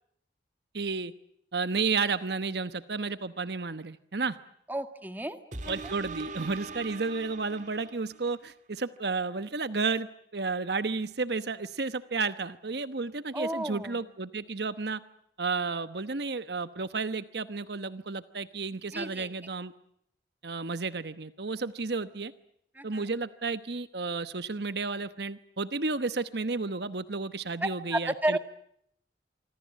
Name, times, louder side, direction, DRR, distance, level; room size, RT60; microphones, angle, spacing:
voice 1, 0.7-1.1 1.5-4.4 5.7-15.0 15.4-19.7 20.4-22.3 22.8-28.4, right 4 dB, 60° right, 12 dB, 1.0 m, -32 dB
voice 2, 4.7-5.4 13.3-14.0 18.9-19.3 22.8-23.0 27.6-28.4, right 1 dB, 10° right, 9 dB, 1.9 m, -32 dB
sound 1, 5.5-8.4 9.0-9.1, right 4 dB, 45° right, 1.9 m, -42 dB
26.0 x 26.0 x 7.5 m, 0.72 s
head